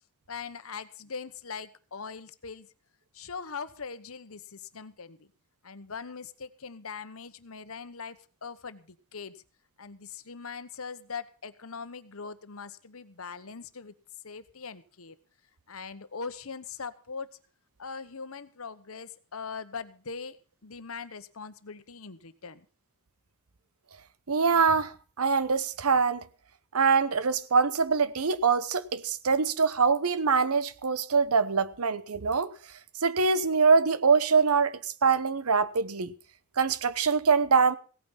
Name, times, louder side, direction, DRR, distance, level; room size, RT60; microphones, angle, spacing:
voice 1, 0.3-2.7 3.1-5.3 5.6-9.4 9.8-13.9 14.2-15.2 15.7-17.3 17.8-20.4 20.6-22.6, left 5 dB, 70° left, 1.1 m, -41 dB
voice 2, 24.3-26.2 26.7-32.5 33.0-36.1 36.6-37.8, right 5 dB, 85° right, 0.9 m, -24 dB
17.0 x 9.1 x 5.6 m
head